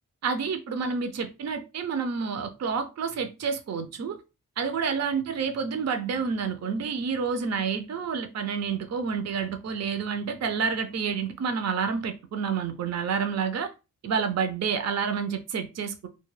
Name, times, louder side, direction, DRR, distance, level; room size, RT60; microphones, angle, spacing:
voice 1, 0.2-4.2 4.6-13.7 14.0-16.1, right 6 dB, 50° right, 0.5 m, -29 dB
2.2 x 2.1 x 3.1 m
cardioid pair, 55°, 34 cm